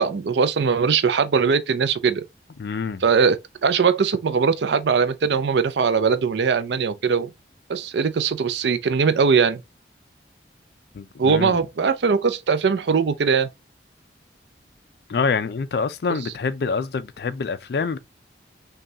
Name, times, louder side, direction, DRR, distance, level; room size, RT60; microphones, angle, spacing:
voice 1, 0.0-2.2 3.0-3.4 3.6-7.3 7.7-9.6 11.2-13.5, right 5 dB, 70° right, 0.4 m, -20 dB
voice 2, 2.6-3.0 10.9-11.6 15.1-18.0, left 5 dB, 60° left, 0.4 m, -26 dB
5.2 x 2.3 x 2.7 m
head